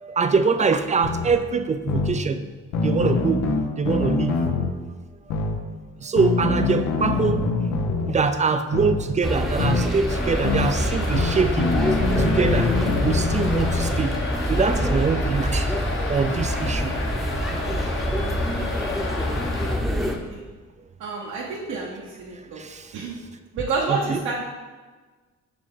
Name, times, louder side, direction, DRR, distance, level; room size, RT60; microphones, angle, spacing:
voice 1, 0.0-2.4 2.8-3.4 3.8-4.6 6.0-7.4 8.1-11.7 12.2-12.7 13.0-14.1 14.5-15.7 16.1-16.9 22.6-22.9 23.9-24.2, right 5 dB, 25° right, 9 dB, 0.4 m, -23 dB
sound 1, 1.0-1.3 1.9-2.1 2.7-4.7 5.3-5.6 6.2-8.1 8.7-9.0 9.6-9.8 10.4-10.7 11.1-13.9, left 4 dB, 80° left, 0.8 m, -24 dB
sound 2, 9.2-20.2, equal, ahead, 0.8 m, -26 dB
sound 3, 10.1-19.7, left 3 dB, 40° left, 1.0 m, -32 dB
voice 2, 21.0-22.6 22.9-23.1 23.5-24.4, right 4 dB, 80° right, -4 dB, 1.0 m, -29 dB
5.9 x 5.0 x 3.7 m, 1.3 s
cardioid pair, 90°, 30 cm